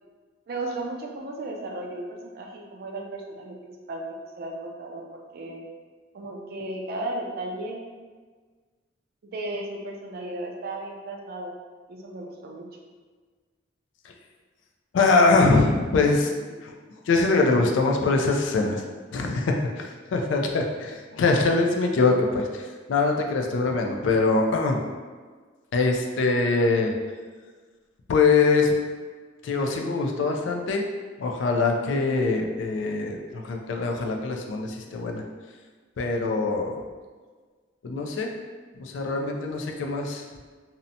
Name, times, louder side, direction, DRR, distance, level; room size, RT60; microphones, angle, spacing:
voice 1, 0.5-3.5 3.9-4.0 4.4-5.6 6.1-7.8 9.2-11.5 11.9-12.6, right 2 dB, 55° right, 1 dB, 0.4 m, -35 dB
voice 2, 14.9-16.3 16.6-16.7 17.1-18.8 19.1-24.8 25.7-26.9 28.1-28.7 29.4-30.8 31.2-35.2 36.0-36.7 37.8-38.3 38.8-40.2, left 3 dB, 75° left, 2 dB, 0.3 m, -23 dB
2.7 x 2.1 x 2.6 m, 1.5 s
head